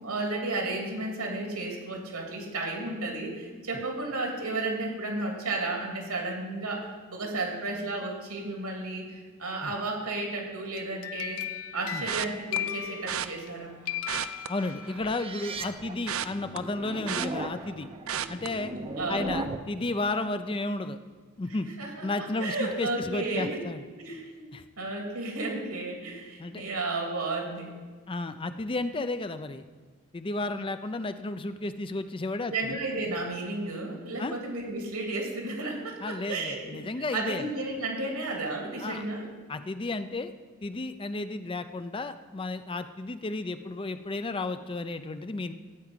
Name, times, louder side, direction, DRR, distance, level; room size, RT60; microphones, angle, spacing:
voice 1, 0.0-11.4 11.7-13.7 18.7-19.5 21.8-23.6 24.0-24.5 24.8-27.7 32.4-36.8 37.1-39.2, right 2 dB, 85° right, 0 dB, 3.1 m, -33 dB
sound 1, 10.8-13.5 13.9-15.2, left 10 dB, 70° left, 0.6 m, -36 dB
sound 2, 12.1-12.6 13.1-13.3 14.0-15.2 15.5-17.7 18.1-18.5 19.0-19.2 19.5-19.6, right 9 dB, 65° right, 0.5 m, -34 dB
sound 3, 14.3-19.8, right 2 dB, 25° right, 0.6 m, -38 dB
voice 2, 14.5-17.9 18.3-18.7 19.1-21.0 21.4-21.7 22.0-23.8 24.5-24.6 26.4-26.6 28.1-29.6 30.1-32.8 34.2-34.4 36.0-37.5 38.8-39.1 39.5-40.3 40.6-45.5, left 2 dB, 25° left, 10 dB, 0.4 m, -33 dB
14.0 x 4.8 x 9.0 m, 1.5 s
head